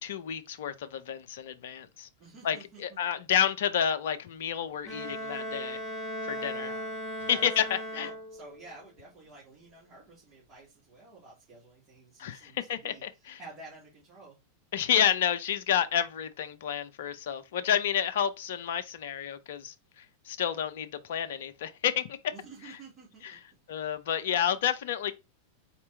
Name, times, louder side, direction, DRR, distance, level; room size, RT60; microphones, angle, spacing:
voice 1, 0.0-2.1 2.4-5.8 6.2-6.7 7.3-8.1 12.2-13.4 14.7-22.3 22.6-22.8 23.2-23.4 23.7-25.1, left 9 dB, 55° left, 0.5 m, -30 dB
voice 2, 2.2-3.0 6.3-6.9 7.2-14.4 22.3-23.3, right 2 dB, 30° right, 2.2 m, -51 dB
Bowed string instrument, 4.8-8.6, equal, 5° left, 1.4 m, -37 dB
4.3 x 2.9 x 3.3 m
figure-of-eight pair, 90°, 0 cm